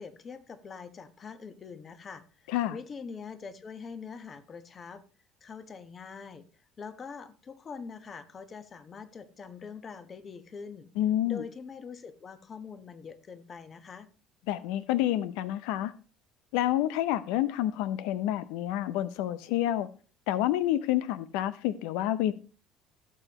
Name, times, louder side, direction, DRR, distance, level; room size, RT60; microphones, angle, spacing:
voice 1, 0.0-5.0 5.4-6.4 6.8-10.9 11.2-14.1, left 5 dB, 30° left, 1.1 m, -44 dB
voice 2, 11.0-11.4 14.5-15.9 16.5-19.9 20.3-22.3, left 13 dB, 85° left, 0.5 m, -28 dB
16.0 x 7.0 x 3.0 m
cardioid pair, 130°, 0 cm